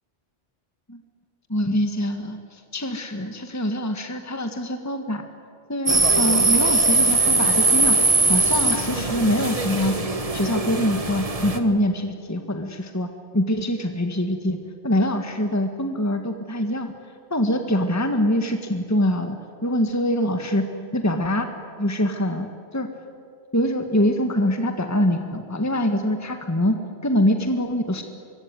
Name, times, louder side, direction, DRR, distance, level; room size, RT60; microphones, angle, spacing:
voice 1, 1.5-5.2 5.7-8.0 8.2-9.9 10.3-13.1 13.3-14.6 14.8-16.9 17.3-19.4 19.6-20.6 20.9-21.5 21.8-22.5 22.7-22.9 23.5-26.8 27.0-28.0, left 1 dB, 15° left, 6 dB, 1.6 m, -24 dB
sound 1, 5.9-11.6, right 3 dB, 30° right, 1.7 m, -20 dB
25.0 x 23.0 x 9.7 m, 2.3 s
omnidirectional pair, 1.2 m